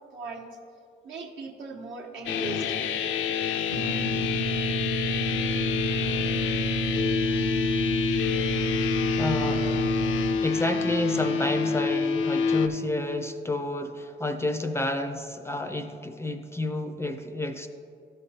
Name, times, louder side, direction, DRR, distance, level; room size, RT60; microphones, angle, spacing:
voice 1, 0.1-0.5 1.0-2.8, right 3 dB, 70° right, 0 dB, 1.0 m, -38 dB
sound 1, 2.3-12.7, left 6 dB, 75° left, 0.4 m, -27 dB
sound 2, 3.7-10.3, right 2 dB, 40° right, 0.6 m, -30 dB
voice 2, 9.2-9.8 10.4-17.7, left 2 dB, 15° left, 7 dB, 0.4 m, -30 dB
12.5 x 5.2 x 2.8 m, 2.6 s
cardioid pair, 90°, 20 cm